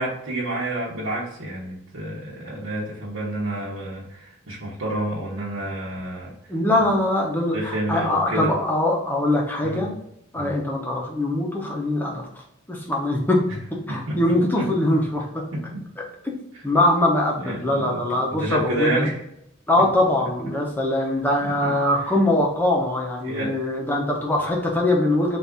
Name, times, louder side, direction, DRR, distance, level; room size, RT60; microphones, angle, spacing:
voice 1, 0.0-6.3 7.5-8.5 9.6-9.9 10.3-10.5 13.9-14.2 14.5-14.7 15.5-15.8 17.4-18.0 18.4-19.2 21.5-21.7 23.2-23.5, right 1 dB, 75° right, -7 dB, 1.0 m, -29 dB
voice 2, 6.5-9.9 10.3-12.4 12.7-13.4 13.9-15.4 16.6-19.1 19.7-25.4, left 1 dB, 10° left, -1 dB, 0.8 m, -22 dB
4.0 x 2.6 x 3.6 m, 0.78 s
head